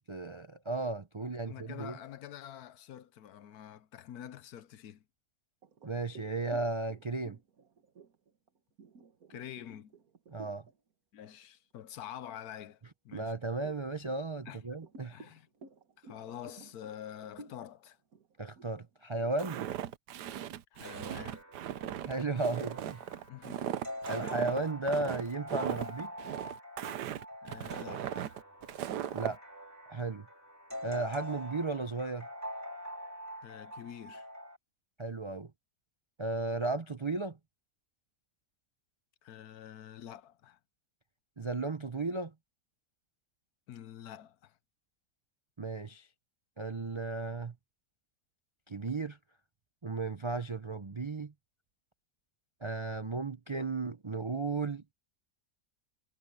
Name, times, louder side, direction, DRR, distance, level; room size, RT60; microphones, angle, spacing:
voice 1, 0.0-2.0 5.8-7.4 10.3-10.6 13.1-15.2 18.4-19.6 22.1-23.0 24.1-26.1 29.1-29.4 29.9-30.3 30.8-32.3 35.0-35.5 36.2-37.4 41.4-42.3 45.6-46.1 46.6-47.5 48.7-49.2 49.8-51.3 52.6-54.8, right 3 dB, 40° right, 0.4 m, -35 dB
voice 2, 1.3-5.0 9.3-9.9 11.1-12.8 13.0-13.3 14.4-14.6 15.1-15.5 16.0-18.0 20.7-21.4 23.3-23.7 27.4-28.3 33.4-34.3 39.2-40.6 43.7-44.6, left 10 dB, 70° left, 1.2 m, -47 dB
sound 1, 5.6-10.8 11.2-11.5 11.9-12.7 13.2-19.9, right 3 dB, 60° right, 1.9 m, -55 dB
Walk footsteps, 19.4-29.4, right 11 dB, 85° right, 1.4 m, -38 dB
sound 2, 20.8-34.6, equal, 10° right, 2.6 m, -45 dB
omnidirectional pair, 1.7 m